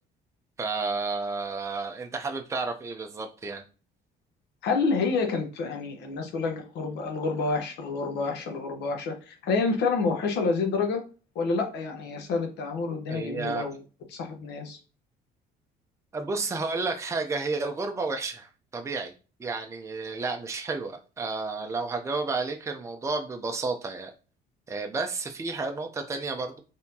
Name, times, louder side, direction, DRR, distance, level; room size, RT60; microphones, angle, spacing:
voice 1, 0.6-3.6 13.1-13.7 16.1-19.1 19.4-24.1 24.7-26.6, right 3 dB, 15° right, 4 dB, 0.6 m, -31 dB
voice 2, 4.6-11.0 11.3-13.8 14.1-14.8, left 4 dB, 80° left, 4 dB, 1.1 m, -28 dB
4.2 x 3.5 x 2.8 m, 0.35 s
cardioid pair, 110°, 17 cm